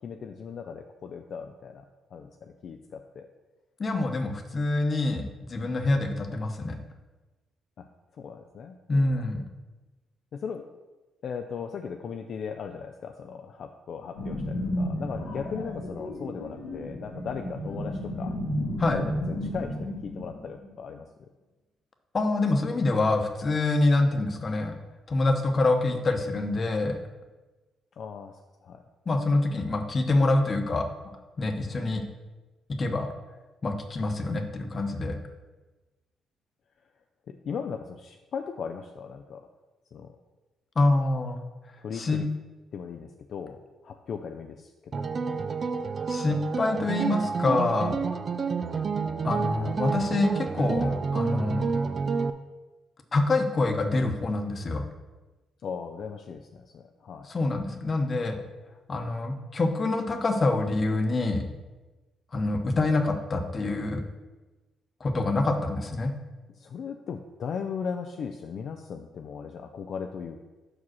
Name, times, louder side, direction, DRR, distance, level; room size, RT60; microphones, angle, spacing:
voice 1, 0.0-1.8 2.1-3.3 7.8-7.9 8.2-9.2 10.3-10.6 11.2-18.4 18.9-21.1 28.0-28.3 28.6-28.8 37.3-39.5 39.9-40.1 41.8-42.3 42.7-45.1 55.6-57.3 66.6-70.4, left 6 dB, 60° left, 5 dB, 0.4 m, -37 dB
voice 2, 3.8-6.8 8.9-9.4 18.8-19.0 22.1-24.7 25.1-27.0 29.1-30.9 31.4-32.0 32.8-33.1 33.6-35.2 40.8-41.4 41.9-42.2 46.1-48.0 49.2-51.6 53.1-54.8 57.2-58.4 58.9-61.4 62.3-64.0 65.0-66.1, left 2 dB, 35° left, 5 dB, 0.9 m, -26 dB
sound 1, 14.2-20.9, left 1 dB, 90° left, 1.4 m, -33 dB
sound 2, 44.9-52.3, right 5 dB, 45° right, 0.4 m, -29 dB
5.5 x 4.9 x 6.2 m, 1.2 s
cardioid pair, 90°, 0 cm